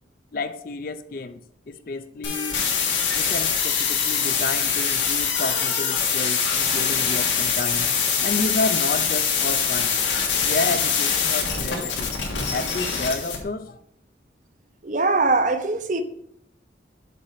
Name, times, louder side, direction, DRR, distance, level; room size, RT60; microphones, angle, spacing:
voice 1, 0.3-1.4 1.7-2.6 3.2-10.0 10.4-12.2 12.5-13.7, left 3 dB, 50° left, 0.5 m, -30 dB
sound 1, 2.2-13.4, left 6 dB, 90° left, 1.6 m, -23 dB
voice 2, 14.8-16.0, right 3 dB, 40° right, 0.6 m, -21 dB
6.8 x 4.2 x 4.9 m
head